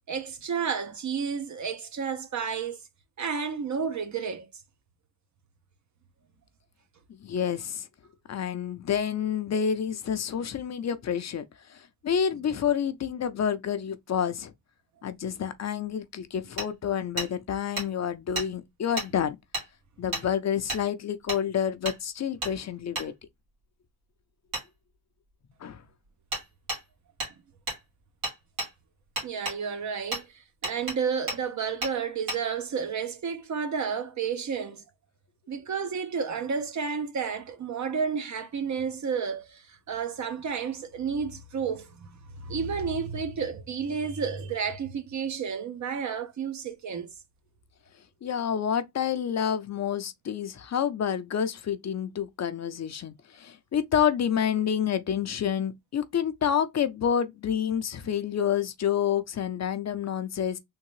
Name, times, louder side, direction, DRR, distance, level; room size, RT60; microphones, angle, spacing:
voice 1, 0.1-2.8 3.2-4.5 29.2-30.3 30.6-34.8 35.5-47.1, right 6 dB, 55° right, 0.7 m, -31 dB
voice 2, 7.1-7.9 8.3-11.4 11.7-14.5 15.0-19.4 20.0-23.1 25.6-25.8 48.2-60.6, left 8 dB, 50° left, 0.5 m, -28 dB
Hammer, 16.6-16.7 17.2-17.3 17.8-17.9 18.3-18.5 19.0-19.1 19.5-19.7 20.1-20.2 20.7-20.8 21.3-21.4 21.8-22.0 22.4-22.5 22.9-23.1 24.5-24.6 26.3-26.4 26.7-26.8 27.2-27.3 27.7-27.8 28.2-28.7 29.2-29.6 30.1-30.2 30.6-31.0 31.3-31.4 31.8-31.9 32.3-32.4, right 1 dB, 85° right, 2.3 m, -32 dB
3.7 x 2.5 x 3.0 m
cardioid pair, 90°, 35 cm